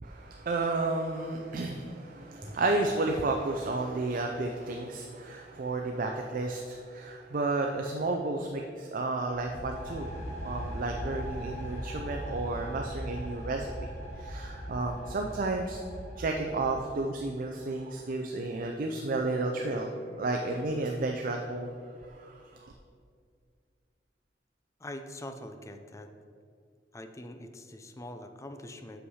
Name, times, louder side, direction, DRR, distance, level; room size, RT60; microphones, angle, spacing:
voice 1, 0.0-10.1 10.4-13.7 14.2-15.8 16.2-21.7 22.1-22.7, right 2 dB, 50° right, 2 dB, 0.5 m, -32 dB
sound 1, 9.3-17.1, equal, 40° left, 1.7 m, -39 dB
voice 2, 24.8-26.1 26.9-29.0, left 1 dB, 15° left, 7 dB, 0.5 m, -43 dB
6.4 x 5.6 x 5.5 m, 2.2 s
head